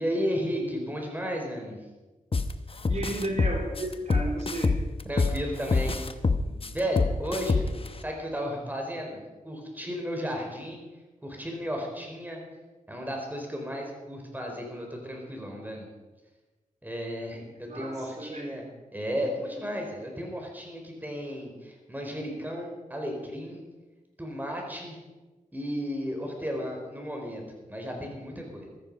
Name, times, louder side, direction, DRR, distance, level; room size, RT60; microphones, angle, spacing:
voice 1, 0.0-1.8 2.9-3.0 5.0-6.0 6.4-10.8 11.2-12.4 12.9-15.9 16.8-18.7 18.9-23.6 24.2-25.0 25.5-27.4 27.7-28.7, equal, 10° right, 1 dB, 4.6 m, -34 dB
sound 1, 2.3-2.5 2.8-5.4 5.7-7.9, left 4 dB, 40° left, 0.9 m, -25 dB
voice 2, 2.9-4.7 17.7-18.6, right 1 dB, 55° right, 1 dB, 3.3 m, -34 dB
15.0 x 13.0 x 5.5 m, 1.2 s
cardioid pair, 65°, 14 cm